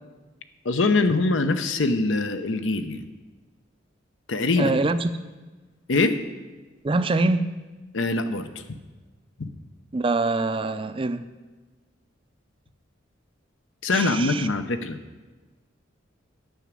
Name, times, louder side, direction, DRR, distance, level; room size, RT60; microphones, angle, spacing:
voice 1, 0.6-3.1 4.3-4.8 5.9-6.2 7.9-8.6 9.4-9.5 13.8-15.0, left 3 dB, 80° left, 0.8 m, -23 dB
voice 2, 4.6-5.1 6.8-7.5 9.9-11.2 13.9-14.5, right 3 dB, 25° right, 0.4 m, -24 dB
9.1 x 6.1 x 8.3 m
head